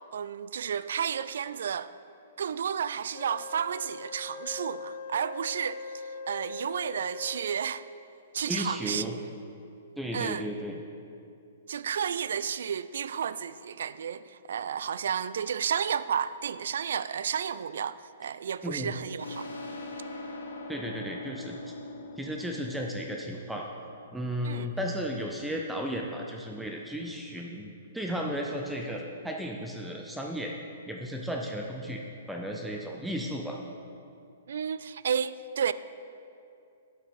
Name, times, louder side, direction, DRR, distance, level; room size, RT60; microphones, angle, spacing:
voice 1, 0.1-1.9 2.4-7.8 8.3-9.1 10.1-10.5 11.7-19.5 24.4-24.7 34.5-35.7, right 7 dB, 65° right, 0.3 m, -32 dB
Wind instrument woodwind instrument, 3.1-7.8, left 4 dB, 60° left, 0.5 m, -41 dB
voice 2, 8.5-9.2 10.0-10.8 18.6-18.9 20.7-21.7 22.2-23.7 24.1-30.5 30.9-32.0 32.3-33.6, equal, 5° right, 0.6 m, -34 dB
sound 1, 19.2-24.5, left 2 dB, 85° left, 1.7 m, -42 dB
8.9 x 6.9 x 5.3 m
hypercardioid pair, 120°, 0 cm